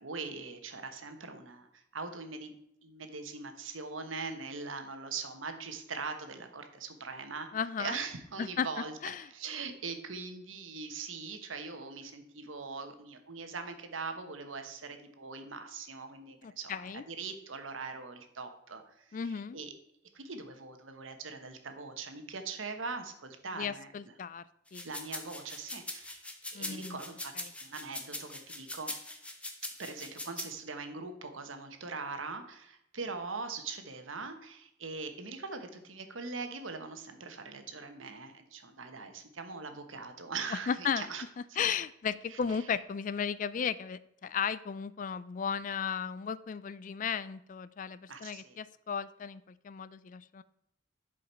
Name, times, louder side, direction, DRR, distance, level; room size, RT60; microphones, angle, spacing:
voice 1, 0.0-1.7 1.9-2.5 2.8-7.5 7.8-8.9 9.3-18.8 19.5-19.7 20.1-23.9 24.8-26.3 26.5-27.3 27.6-28.9 29.6-41.2 48.1-48.6, right 4 dB, 85° right, 7 dB, 1.2 m, -41 dB
voice 2, 7.5-8.0 8.4-9.3 16.4-17.0 19.1-19.6 23.5-24.9 26.5-27.0 27.3-27.5 40.5-41.1 41.4-50.4, left 7 dB, 40° left, 17 dB, 0.3 m, -35 dB
sound 1, 24.7-30.5, left 2 dB, 5° left, 0.8 m, -41 dB
11.0 x 5.1 x 4.4 m, 0.76 s
head